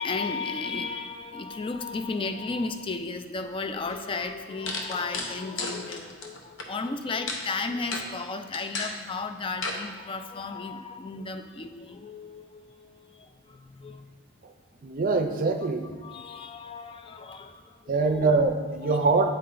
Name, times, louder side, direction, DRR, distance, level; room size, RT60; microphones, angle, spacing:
voice 1, 0.0-14.1 16.0-18.2 18.8-19.1, left 4 dB, 25° left, 8 dB, 0.4 m, -34 dB
sound 1, 3.9-4.0 4.7-6.7 7.3-7.5 7.9-8.1 8.5-9.0 9.6-9.8, left 3 dB, 75° left, 0.8 m, -33 dB
voice 2, 14.8-15.8 17.9-19.3, right 3 dB, 45° right, 6 dB, 0.5 m, -23 dB
8.5 x 4.3 x 3.8 m, 1.4 s
head